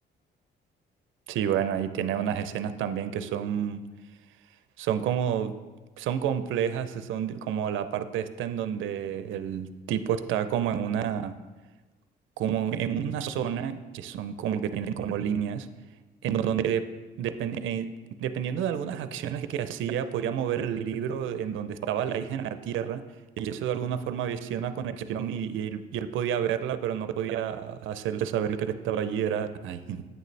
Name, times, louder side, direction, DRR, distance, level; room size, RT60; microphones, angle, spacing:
voice 1, 1.3-3.8 4.8-5.5 6.0-11.3 12.4-15.7 16.2-16.8 17.2-17.9 18.2-23.0 23.4-30.1, right 9 dB, 80° right, 11 dB, 0.5 m, -29 dB
8.9 x 6.6 x 3.2 m, 1.2 s
cardioid pair, 90°, 20 cm